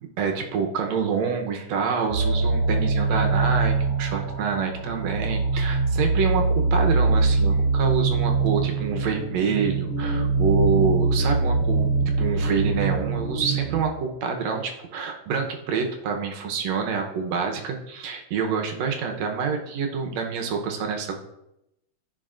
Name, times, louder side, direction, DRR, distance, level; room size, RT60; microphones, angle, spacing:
voice 1, 0.2-11.9 12.2-21.2, right 5 dB, 75° right, 3 dB, 2.1 m, -27 dB
sound 1, 2.1-13.8, right 3 dB, 50° left, 2.5 m, -23 dB
14.5 x 5.5 x 2.5 m, 0.85 s
omnidirectional pair, 3.3 m